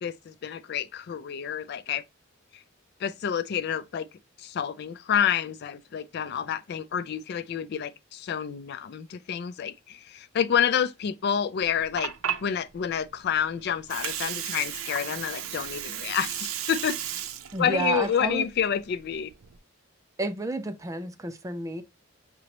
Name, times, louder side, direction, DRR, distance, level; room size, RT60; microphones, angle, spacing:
voice 1, 0.0-2.0 3.0-4.1 4.4-12.1 12.4-17.0 17.6-19.3, left 8 dB, 50° left, 0.3 m, -28 dB
Water, 11.6-19.6, right 9 dB, 90° right, 0.5 m, -35 dB
voice 2, 17.5-18.5 20.2-21.8, right 2 dB, 15° right, 0.4 m, -30 dB
6.0 x 3.0 x 2.9 m
head